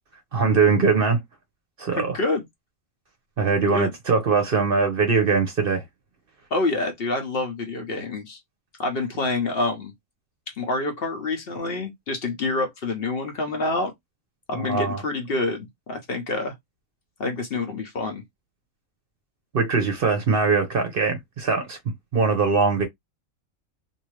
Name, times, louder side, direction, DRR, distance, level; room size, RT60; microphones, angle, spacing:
voice 1, 0.3-1.2 1.8-2.2 3.4-5.8 14.5-15.0 19.5-21.8 22.1-22.9, right 4 dB, 50° right, 0.8 m, -21 dB
voice 2, 1.9-2.4 3.7-3.9 6.5-8.4 8.8-9.9 10.5-13.9 14.5-16.5 17.2-18.2, left 2 dB, 50° left, 0.9 m, -27 dB
2.6 x 2.6 x 3.1 m
omnidirectional pair, 1.4 m